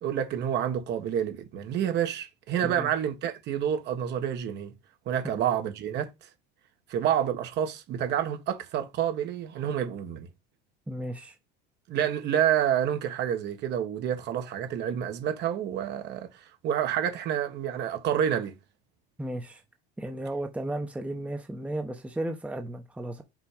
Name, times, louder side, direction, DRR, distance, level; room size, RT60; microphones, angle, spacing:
voice 1, 0.0-4.7 5.0-6.3 6.9-10.3 11.9-18.6, right 9 dB, 55° right, 1.6 m, -28 dB
voice 2, 10.9-11.4 19.2-19.6 20.0-23.2, right 1 dB, 5° right, 1.0 m, -34 dB
6.0 x 3.4 x 5.1 m
supercardioid pair, 100°, 21 cm